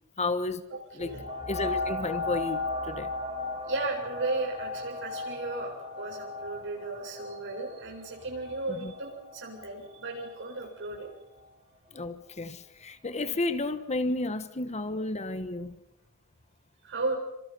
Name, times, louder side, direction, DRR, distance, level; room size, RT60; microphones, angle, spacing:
voice 1, 0.2-0.6 0.9-1.1 1.5-3.1 8.8-8.9 11.9-15.7, left 2 dB, 30° left, 1.2 m, -32 dB
voice 2, 0.7-1.2 3.7-11.1 16.8-17.2, right 3 dB, 60° right, 7.6 m, -35 dB
sound 1, 1.0-10.3 10.9-11.0, left 3 dB, 20° right, 7.0 m, -36 dB
29.0 x 26.0 x 5.5 m
head